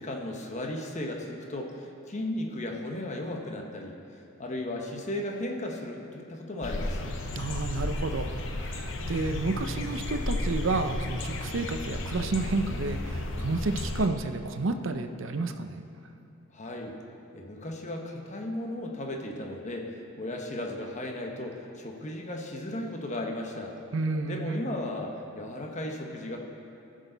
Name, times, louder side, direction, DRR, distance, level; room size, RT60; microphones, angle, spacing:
voice 1, 0.0-7.2 16.5-17.0 17.3-23.8 24.2-26.4, left 1 dB, 35° left, 1 dB, 1.0 m, -35 dB
sound 1, 6.6-14.1, left 1 dB, 60° left, 0.8 m, -33 dB
voice 2, 7.4-15.8 23.9-24.6, right 3 dB, 65° right, 8 dB, 0.6 m, -31 dB
15.5 x 6.4 x 4.0 m, 2.9 s
head